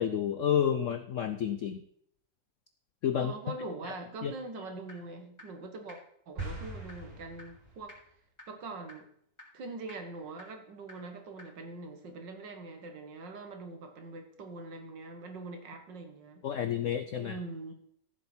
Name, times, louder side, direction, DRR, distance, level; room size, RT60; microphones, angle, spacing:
voice 1, 0.0-1.8 3.0-3.3 4.2-4.3 16.4-17.4, left 9 dB, 75° left, 10 dB, 0.7 m, -30 dB
voice 2, 3.2-6.0 6.3-8.0 8.5-9.1 9.5-16.5 17.2-17.7, right 3 dB, 70° right, 5 dB, 2.1 m, -43 dB
sound 1, 4.9-5.0 5.4-5.5 5.9-6.0 6.4-6.5 6.9-7.0 7.4-7.5 7.9-8.0 8.4-8.5 8.9-9.0 9.4-9.5 9.9-10.0 10.4-10.5 10.9-11.0 11.4-11.5, left 1 dB, 15° left, 4.2 m, -48 dB
sound 2, 6.4-8.0, right 2 dB, 30° right, 2.4 m, -42 dB
15.0 x 7.3 x 4.4 m, 0.67 s
omnidirectional pair, 2.0 m